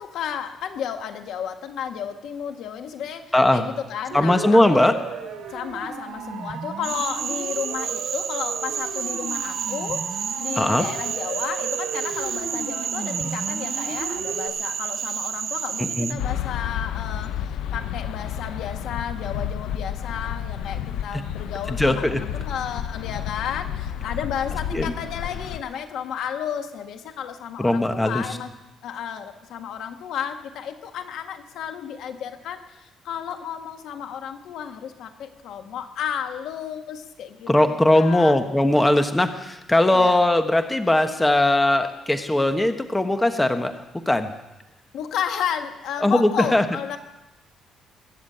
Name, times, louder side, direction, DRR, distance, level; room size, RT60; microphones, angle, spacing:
voice 1, 0.0-4.9 5.5-10.1 10.4-28.5 28.8-38.4 39.9-40.2 44.9-47.0, left 8 dB, 75° left, 6 dB, 1.7 m, -32 dB
voice 2, 3.3-3.6 4.1-4.9 10.6-10.8 15.8-16.2 21.8-22.2 24.7-24.9 27.6-28.2 37.5-43.7 44.1-44.3 46.0-46.6, left 1 dB, 10° left, 7 dB, 1.3 m, -19 dB
Siren, 4.1-14.5, right 5 dB, 70° right, 3.3 m, -34 dB
Cricket / Frog, 6.8-16.1, right 7 dB, 55° right, 0.9 m, -30 dB
sound 1, 16.2-25.6, left 9 dB, 90° left, 0.7 m, -31 dB
22.0 x 7.5 x 8.6 m, 0.98 s
cardioid pair, 130°, 0 cm